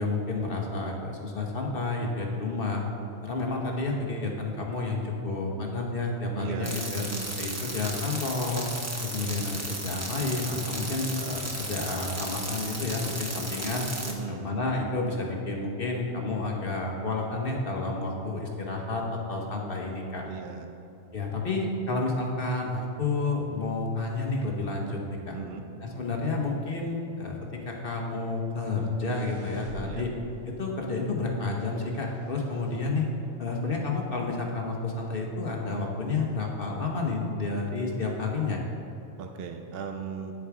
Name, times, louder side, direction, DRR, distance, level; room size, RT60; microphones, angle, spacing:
voice 1, 0.0-2.8 3.2-7.1 7.4-8.7 9.0-13.8 14.3-20.2 21.1-25.3 25.8-30.1 30.5-33.1 33.4-38.6, left 3 dB, 55° left, 0 dB, 1.2 m, -30 dB
voice 2, 6.3-7.4 14.0-14.5 20.3-20.7 25.3-25.6 29.8-30.1 39.2-40.3, right 6 dB, 60° right, 5 dB, 0.8 m, -37 dB
sound 1, 6.6-14.1, right 1 dB, 15° right, 0.8 m, -35 dB
sound 2, 28.6-33.6 33.9-34.0, equal, 80° right, 2.3 m, -50 dB
9.4 x 6.9 x 4.7 m, 2.7 s
omnidirectional pair, 1.2 m